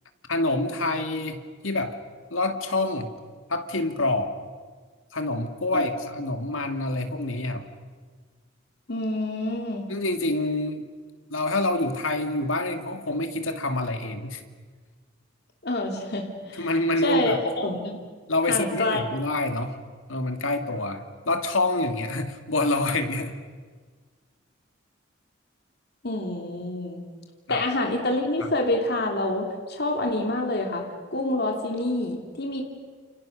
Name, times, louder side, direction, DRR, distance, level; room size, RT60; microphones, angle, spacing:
voice 1, 0.3-2.0 2.3-3.1 3.5-4.3 5.1-7.7 9.9-10.8 11.3-14.4 16.6-17.4 18.3-19.8 20.1-23.4 27.5-27.6 28.4-28.5, left 2 dB, 85° left, 7 dB, 2.4 m, -27 dB
voice 2, 8.9-9.9 15.6-16.7 17.0-18.0 18.5-19.0 26.0-27.0 27.5-32.7, left 2 dB, 55° left, 2 dB, 3.0 m, -27 dB
29.5 x 28.5 x 6.6 m, 1.5 s
head